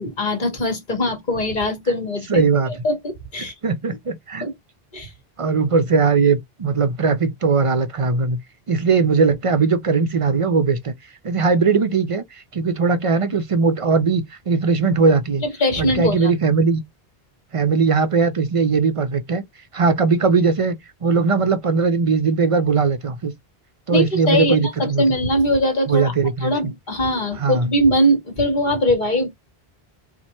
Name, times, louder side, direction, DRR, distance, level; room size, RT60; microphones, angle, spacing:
voice 1, 0.0-3.5 4.4-4.5 4.9-5.1 15.6-16.3 23.9-26.1 26.4-29.3, equal, 50° left, 1.3 m, -21 dB
voice 2, 2.3-2.7 3.4-4.5 5.4-8.4 8.7-10.9 11.2-15.4 15.8-16.8 17.5-19.4 19.7-20.8 21.0-23.3 23.9-25.0 25.9-26.5 27.4-27.7, right 4 dB, 45° right, 0.4 m, -19 dB
4.3 x 2.2 x 3.0 m
omnidirectional pair, 1.0 m